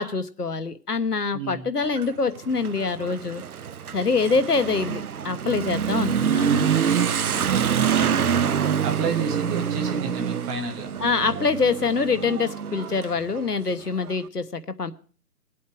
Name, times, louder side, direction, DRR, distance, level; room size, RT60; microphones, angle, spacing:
voice 1, 0.0-3.4 3.9-6.8 11.0-14.9, left 4 dB, 85° left, 13 dB, 1.3 m, -25 dB
voice 2, 1.3-1.7 7.2-10.9, right 4 dB, 10° right, 3 dB, 0.8 m, -32 dB
Motorcycle / Accelerating revving vroom, 1.8-14.1, right 8 dB, 70° right, 0.7 m, -26 dB
20.0 x 8.5 x 4.7 m, 0.41 s
figure-of-eight pair, 140°, 45 cm